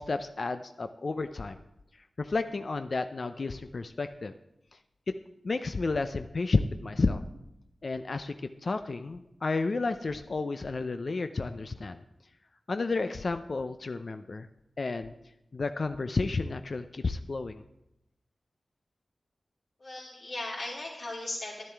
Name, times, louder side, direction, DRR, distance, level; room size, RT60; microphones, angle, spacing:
voice 1, 0.0-1.6 2.2-4.3 5.4-7.2 7.8-8.3 8.6-12.0 12.7-14.5 14.8-15.1 15.5-17.6, left 3 dB, 60° left, 8 dB, 0.4 m, -31 dB
voice 2, 19.8-21.7, left 2 dB, 85° left, -11 dB, 2.9 m, -37 dB
11.0 x 10.5 x 3.4 m, 0.85 s
cardioid pair, 60°, 0 cm